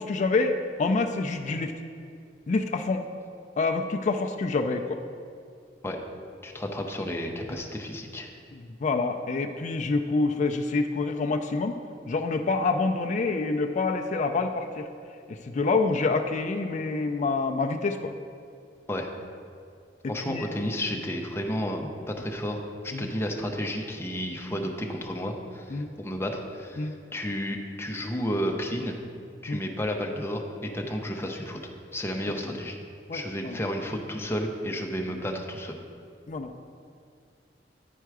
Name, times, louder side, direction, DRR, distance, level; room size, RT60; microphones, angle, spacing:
voice 1, 0.0-1.7 2.5-3.0 3.6-5.0 8.5-11.8 12.1-14.9 15.3-18.1 20.0-20.5 22.9-23.1 25.7-25.9 26.8-27.0 29.5-29.6 32.4-32.6 33.1-33.6 36.3-36.5, left 3 dB, 45° left, 5 dB, 0.4 m, -27 dB
voice 2, 6.4-8.3 18.9-19.1 20.1-29.0 29.4-30.4 30.7-31.6 31.9-32.8 33.1-35.8, equal, 15° left, 1 dB, 0.7 m, -32 dB
10.0 x 4.6 x 4.7 m, 2.3 s
head